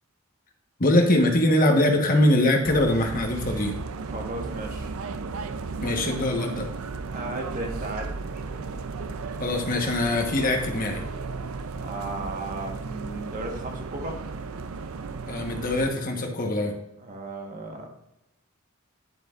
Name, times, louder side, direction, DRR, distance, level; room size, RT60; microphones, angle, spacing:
voice 1, 0.8-3.7 5.8-6.7 9.4-11.0 15.3-16.7, left 1 dB, 40° left, 3 dB, 1.1 m, -22 dB
sound 1, 2.6-15.9, right 4 dB, 85° right, 0.5 m, -35 dB
voice 2, 4.0-4.9 7.1-8.6 11.8-14.2 17.0-17.9, right 2 dB, 40° right, 1 dB, 1.3 m, -35 dB
10.0 x 7.5 x 2.5 m, 0.88 s
head